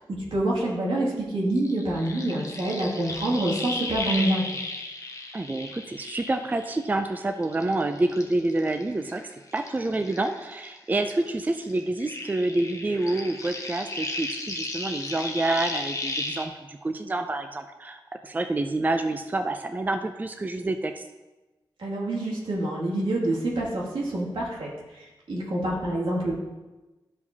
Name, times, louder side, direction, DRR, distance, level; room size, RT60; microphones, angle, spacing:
voice 1, 0.1-4.6 21.8-26.3, right 1 dB, 90° right, -5 dB, 2.3 m, -27 dB
sound 1, 1.6-7.1 7.4-10.8 11.0-16.4, left 2 dB, 40° left, 0.9 m, -35 dB
voice 2, 5.3-9.2 9.5-21.0, right 2 dB, 20° right, 7 dB, 0.4 m, -28 dB
13.0 x 4.7 x 2.8 m, 1.1 s
wide cardioid pair, 130°, 9 cm